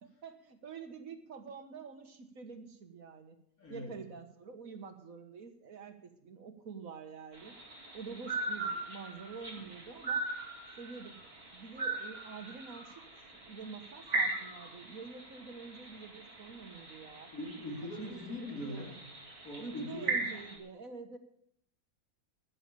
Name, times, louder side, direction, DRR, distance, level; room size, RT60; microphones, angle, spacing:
voice 1, 0.0-3.4 3.7-7.6 7.9-10.2 10.8-11.2 11.5-13.0 13.5-17.3 18.0-18.9 19.6-21.2, right 5 dB, 65° right, 7 dB, 1.8 m, -47 dB
voice 2, 3.6-3.9 17.3-19.0 19.4-20.2, left 1 dB, 65° left, 2 dB, 3.0 m, -41 dB
Unidentified night bird call, 7.3-20.6, right 3 dB, 40° right, 3.0 m, -39 dB
13.0 x 10.0 x 6.8 m, 0.72 s
omnidirectional pair, 1.6 m